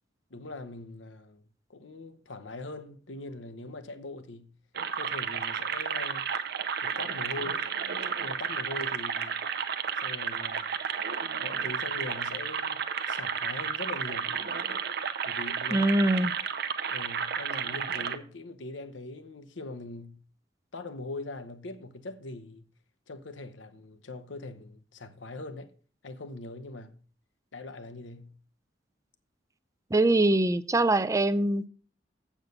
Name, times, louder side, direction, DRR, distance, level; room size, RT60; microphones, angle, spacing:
voice 1, 0.3-1.4 1.7-4.5 4.9-6.3 6.8-7.7 8.2-9.5 10.0-10.8 11.4-14.4 15.2-15.9 16.2-16.3 16.9-20.2 20.7-22.7 23.1-25.7 26.0-27.0 27.5-28.4, left 2 dB, 85° left, 0.8 m, -42 dB
sound 1, 4.7-18.2, right 7 dB, 60° right, 0.7 m, -32 dB
voice 2, 15.7-16.3 29.9-31.7, right 2 dB, 15° right, 0.5 m, -23 dB
7.9 x 7.3 x 5.3 m
head